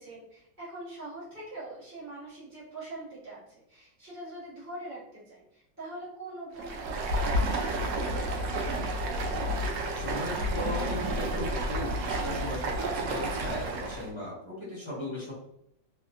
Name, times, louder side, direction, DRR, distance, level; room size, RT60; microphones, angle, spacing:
voice 1, 0.0-9.5, right 2 dB, 10° right, -12 dB, 1.2 m, -43 dB
Stream, 6.5-14.1, right 1 dB, 75° right, 1.0 m, -30 dB
voice 2, 9.9-15.3, left 1 dB, 20° left, -7 dB, 0.9 m, -37 dB
3.3 x 2.8 x 2.4 m, 0.78 s
omnidirectional pair, 2.1 m